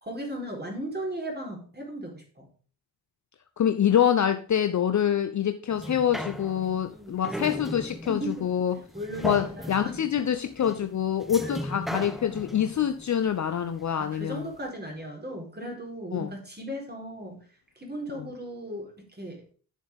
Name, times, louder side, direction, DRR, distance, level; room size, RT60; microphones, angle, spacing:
voice 1, 0.0-2.5 6.6-7.4 8.1-8.5 8.9-9.9 11.4-11.5 14.0-17.4 17.8-19.4, right 1 dB, 20° right, 4.4 m, -37 dB
voice 2, 3.6-8.8 9.2-14.5 16.1-16.3 18.1-18.3, left 9 dB, 35° left, 0.8 m, -26 dB
sound 1, 5.7-14.2 14.7-14.8, equal, ahead, 1.0 m, -38 dB
10.5 x 7.3 x 3.6 m
figure-of-eight pair, 40°, 50 cm